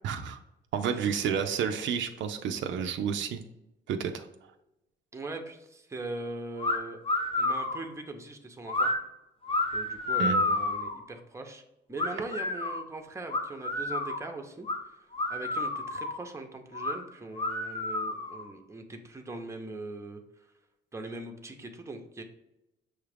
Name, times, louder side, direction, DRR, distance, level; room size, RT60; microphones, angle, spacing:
voice 1, 0.0-0.4 0.7-3.4 3.9-4.3 10.2-10.4, right 7 dB, 70° right, 6 dB, 0.4 m, -30 dB
voice 2, 5.1-7.0 7.4-8.9 9.7-11.6 11.9-20.5 20.9-22.2, right 2 dB, 15° right, 4 dB, 0.6 m, -41 dB
sound 1, 6.6-6.8 7.0-7.8 8.7-8.9 9.4-11.0 12.0-12.8 13.3-14.2 14.6-14.8 15.1-16.2 16.7-17.0 17.3-18.5, left 2 dB, 30° left, 0.8 m, -30 dB
6.2 x 2.4 x 3.3 m, 0.92 s
cardioid pair, 90°, 20 cm